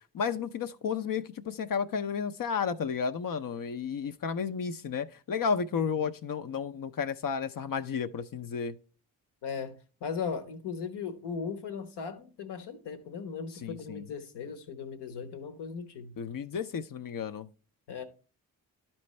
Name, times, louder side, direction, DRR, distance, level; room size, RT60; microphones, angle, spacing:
voice 1, 0.1-8.7 13.6-14.0 16.2-17.5, left 6 dB, 50° left, 0.6 m, -32 dB
voice 2, 9.4-9.7 10.0-16.1 17.9-18.0, left 6 dB, 70° left, 1.1 m, -38 dB
11.5 x 4.4 x 3.2 m
hypercardioid pair, 40°, 43 cm